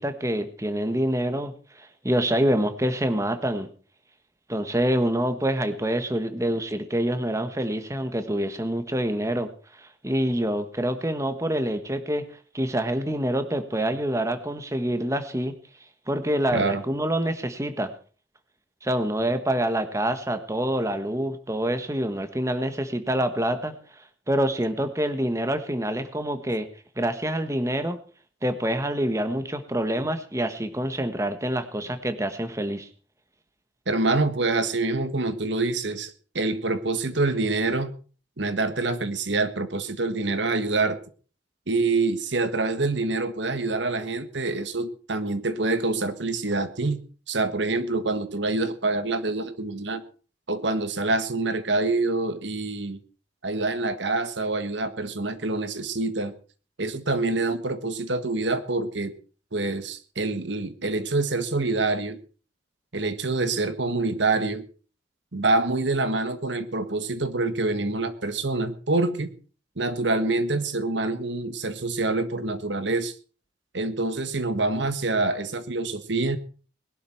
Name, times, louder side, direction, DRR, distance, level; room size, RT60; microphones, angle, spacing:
voice 1, 0.0-3.7 4.5-12.2 12.5-15.5 16.1-17.9 18.8-26.7 27.0-28.0 28.4-32.9, right 1 dB, 15° right, 9 dB, 1.4 m, -26 dB
voice 2, 16.5-16.8 33.9-37.9 38.4-41.0 41.7-47.0 47.3-50.0 50.5-53.0 53.4-56.3 56.8-59.1 59.5-62.2 62.9-64.6 65.3-69.3 69.8-73.1 73.7-76.4, right 3 dB, 75° right, 11 dB, 1.6 m, -26 dB
21.0 x 11.5 x 4.5 m, 0.40 s
head